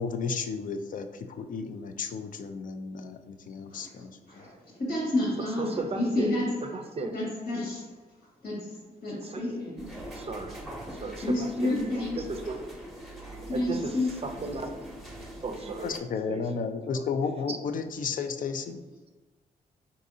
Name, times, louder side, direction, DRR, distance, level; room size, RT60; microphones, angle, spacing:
voice 1, 0.0-4.4 15.8-18.8, left 5 dB, 55° left, 8 dB, 0.4 m, -33 dB
voice 2, 3.5-6.7 7.1-10.0 11.2-12.3 12.7-12.8 13.4-14.2, left 1 dB, 75° left, -4 dB, 1.4 m, -31 dB
voice 3, 5.6-6.3 6.7-7.2 9.3-9.5 10.1-10.6 10.9-12.6 13.4-14.0 14.2-14.8 15.4-16.0 16.3-16.4 16.9-17.0 17.5-17.6, right 3 dB, 35° right, 6 dB, 0.5 m, -35 dB
sound 1, 9.8-16.0, right 1 dB, ahead, 0.8 m, -43 dB
3.9 x 2.7 x 2.7 m, 1.2 s
supercardioid pair, 55°, 16 cm